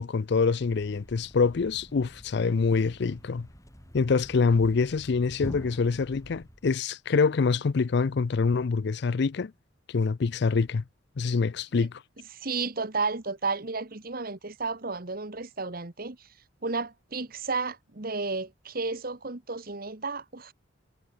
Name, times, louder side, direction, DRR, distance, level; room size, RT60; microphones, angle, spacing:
voice 1, 0.0-3.5 3.9-9.5 9.9-10.8 11.2-12.0, left 4 dB, 55° left, 0.5 m, -25 dB
Thump thud, 0.5-6.7, equal, 15° left, 5.9 m, -45 dB
voice 2, 12.3-16.3 16.6-20.5, right 4 dB, 45° right, 1.4 m, -32 dB
head